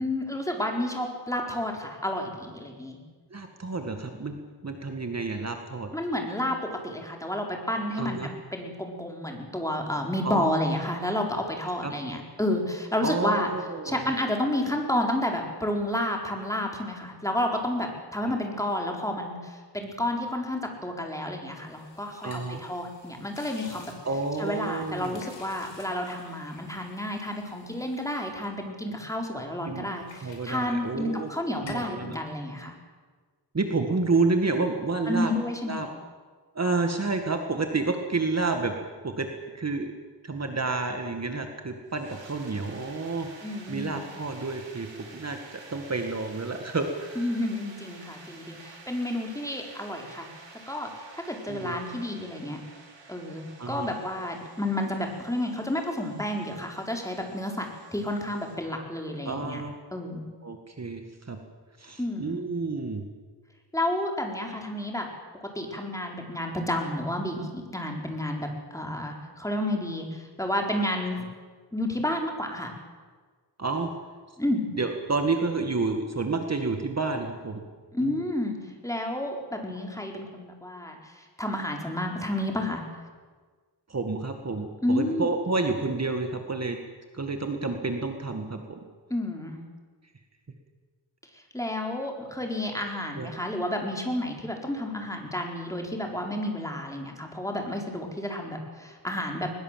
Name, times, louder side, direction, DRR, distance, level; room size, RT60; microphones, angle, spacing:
voice 1, 0.0-3.0 5.9-13.5 13.8-23.9 24.4-32.7 35.1-35.8 43.4-44.0 47.2-50.3 50.7-52.6 53.1-59.6 59.9-60.3 62.0-62.4 63.7-65.1 65.4-71.3 71.7-72.7 74.4-74.6 77.9-82.8 84.8-85.3 89.1-89.6 91.5-99.5, left 1 dB, 5° left, 2 dB, 4.3 m, -30 dB
voice 2, 3.3-5.9 8.0-8.3 10.2-10.7 11.0-11.2 11.8-11.9 13.0-14.1 22.2-22.6 24.0-25.2 29.3-29.9 30.2-31.3 31.6-32.2 33.5-35.3 35.7-35.9 36.6-38.7 39.0-39.3 39.5-39.9 40.2-43.3 43.7-44.9 45.1-47.2 51.5-51.8 53.6-53.9 59.3-59.7 60.4-61.4 61.8-63.0 73.6-73.9 74.8-77.6 78.0-78.3 83.9-86.8 87.1-88.8 93.2-93.3, right 3 dB, 35° right, 5 dB, 2.0 m, -30 dB
sound 1, 21.5-29.3 29.6-31.3 31.6-32.0, left 4 dB, 80° left, 5.2 m, -51 dB
sound 2, 41.9-58.6, right 4 dB, 90° right, 5.3 m, -50 dB
22.0 x 21.0 x 7.6 m, 1.5 s
wide cardioid pair, 100°, 43 cm